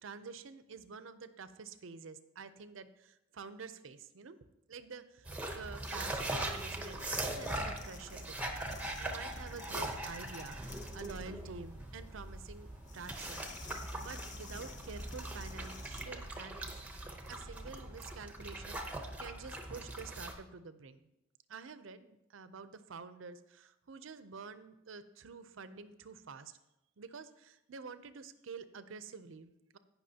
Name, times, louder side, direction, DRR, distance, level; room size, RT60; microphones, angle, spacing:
voice 1, 0.0-4.4 4.7-5.3 5.5-8.6 9.0-16.8 17.3-21.1 21.5-26.6 27.0-29.8, right 5 dB, 70° right, 12 dB, 0.6 m, -48 dB
sound 1, 5.2-20.3, right 1 dB, 5° right, 0.8 m, -41 dB
sound 2, 5.8-16.1, left 3 dB, 40° left, 0.7 m, -52 dB
17.0 x 5.8 x 2.8 m, 0.90 s
head